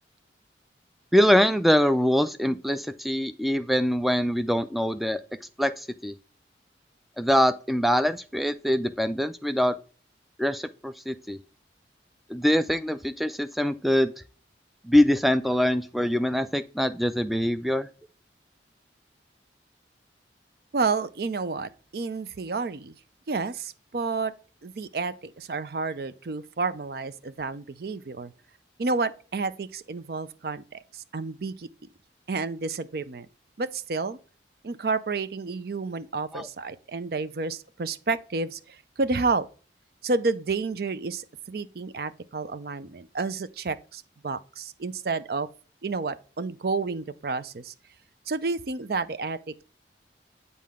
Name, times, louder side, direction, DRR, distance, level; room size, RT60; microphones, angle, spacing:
voice 1, 1.1-5.2 5.6-6.1 7.2-9.8 10.4-11.4 12.3-14.1 14.8-17.9 36.3-36.5, equal, ahead, 0.4 m, -23 dB
voice 2, 20.7-22.9 23.3-24.3 24.6-28.3 28.8-31.7 32.3-33.3 33.6-34.2 34.6-39.5 40.0-45.5 45.8-47.7 48.3-49.6, right 4 dB, 55° right, 0.5 m, -30 dB
7.6 x 4.1 x 3.6 m
head